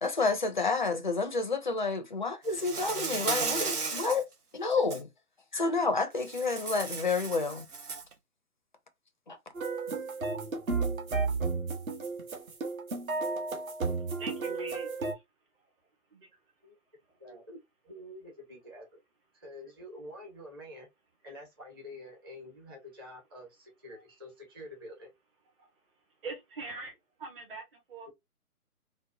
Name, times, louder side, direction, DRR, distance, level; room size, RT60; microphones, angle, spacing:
voice 1, 0.0-4.3 4.5-5.1 5.5-7.7 9.3-9.4, left 3 dB, 35° left, 0.4 m, -29 dB
Insect, 2.5-4.2 4.7-5.0 6.2-8.1, right 4 dB, 80° right, 1.0 m, -34 dB
sound 1, 9.5-15.1, right 4 dB, 65° right, 1.2 m, -33 dB
voice 2, 14.2-15.2 16.1-16.3 23.9-24.0 25.6-25.7 26.2-28.1, right 3 dB, 35° right, 1.1 m, -43 dB
voice 3, 17.2-17.6 17.8-18.9 19.3-20.9 21.2-25.1, left 1 dB, 15° right, 0.6 m, -47 dB
3.9 x 2.1 x 2.6 m
figure-of-eight pair, 140°, 45 cm